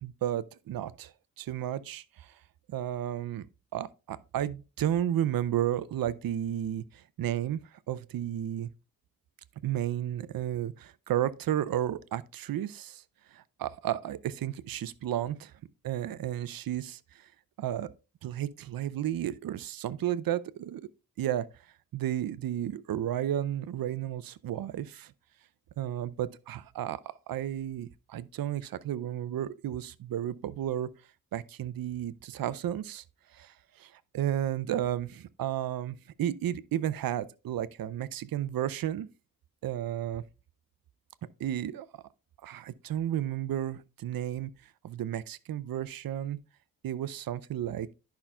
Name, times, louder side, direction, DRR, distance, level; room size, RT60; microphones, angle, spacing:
voice 1, 0.0-2.4 2.7-3.5 3.7-8.7 9.6-13.0 13.3-15.5 15.8-17.3 17.6-17.9 18.2-20.9 21.2-21.5 21.9-25.1 25.8-27.0 27.3-30.9 31.3-33.0 33.3-39.1 39.6-40.2 41.4-41.9 42.4-44.5 44.8-46.4 46.8-47.9, right 11 dB, 70° right, 0.5 m, -33 dB
11.0 x 5.7 x 2.3 m
wide cardioid pair, 120°, 36 cm